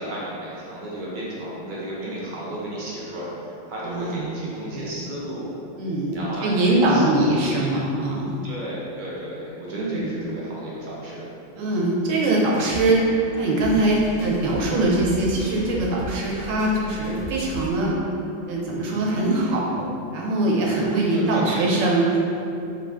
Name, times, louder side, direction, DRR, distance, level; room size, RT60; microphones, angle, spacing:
voice 1, 0.0-5.5 6.1-7.7 8.4-11.2 21.1-21.6, right 1 dB, 55° right, -6 dB, 0.6 m, -33 dB
voice 2, 3.8-4.9 5.8-8.4 9.7-10.3 11.5-13.0 13.4-17.9 18.5-22.2, right 2 dB, 80° right, -3 dB, 1.0 m, -22 dB
sound 1, 12.3-17.7, left 1 dB, 55° left, 0.7 m, -37 dB
2.5 x 2.4 x 3.3 m, 2.7 s
omnidirectional pair, 1.4 m